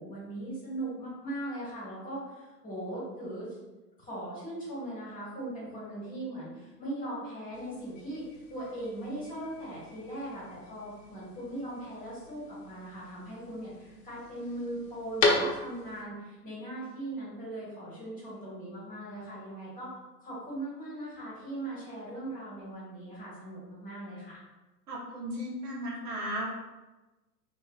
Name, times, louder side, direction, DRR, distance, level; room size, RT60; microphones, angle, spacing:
voice 1, 0.0-3.5 4.0-19.9 20.2-24.4, right 1 dB, 15° left, -7 dB, 1.2 m, -39 dB
sound 1, 7.5-16.0, left 3 dB, 55° left, 0.7 m, -36 dB
voice 2, 24.9-26.5, equal, 70° right, -4 dB, 1.1 m, -35 dB
3.0 x 2.7 x 2.3 m, 1.1 s
figure-of-eight pair, 100°, 48 cm